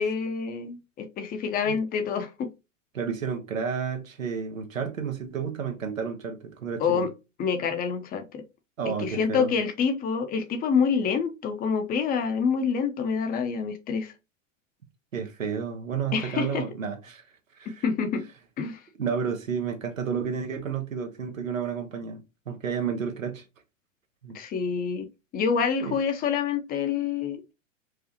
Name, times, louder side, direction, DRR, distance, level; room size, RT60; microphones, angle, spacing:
voice 1, 0.0-2.5 6.8-7.1 7.4-8.4 8.9-14.1 16.1-16.6 17.8-18.2 18.6-18.8 24.3-25.1 25.3-27.5, left 6 dB, 25° left, 0.6 m, -27 dB
voice 2, 2.9-7.1 8.8-9.5 15.1-17.2 17.6-17.8 19.0-22.2 22.5-23.4 24.2-24.4 25.8-26.0, right 6 dB, 85° right, 1.1 m, -31 dB
4.9 x 2.4 x 2.8 m
hypercardioid pair, 105°, 39 cm